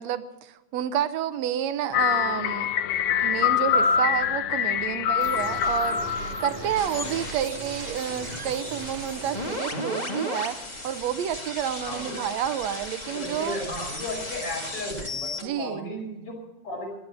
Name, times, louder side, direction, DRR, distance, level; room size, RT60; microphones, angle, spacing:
voice 1, 0.0-2.7 3.2-6.0 6.4-10.6 10.8-13.6 15.4-15.9, right 10 dB, 70° right, 12 dB, 1.8 m, -29 dB
sound 1, 1.9-7.3, left 8 dB, 80° left, 2.5 m, -25 dB
sound 2, 5.2-9.6, right 6 dB, 90° right, 3.4 m, -40 dB
sound 3, 6.7-15.4, left 1 dB, 15° left, 1.7 m, -35 dB
voice 2, 11.8-12.2 13.0-16.3 16.6-16.9, left 1 dB, 45° left, 0 dB, 6.5 m, -34 dB
17.0 x 12.0 x 6.9 m, 0.98 s
omnidirectional pair, 3.6 m